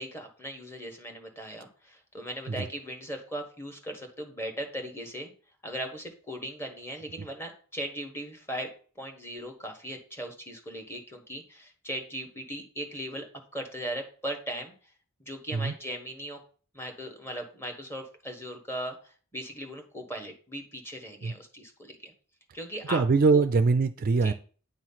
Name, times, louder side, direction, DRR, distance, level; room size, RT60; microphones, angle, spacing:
voice 1, 0.0-5.3 5.6-8.7 9.0-13.3 13.5-14.7 15.2-16.4 16.7-22.1 22.5-23.0 23.3-23.4 24.2-24.3, equal, 10° left, 3 dB, 1.3 m, -38 dB
voice 2, 22.9-24.3, right 4 dB, 45° right, 10 dB, 0.4 m, -23 dB
9.4 x 3.1 x 5.6 m, 0.41 s
head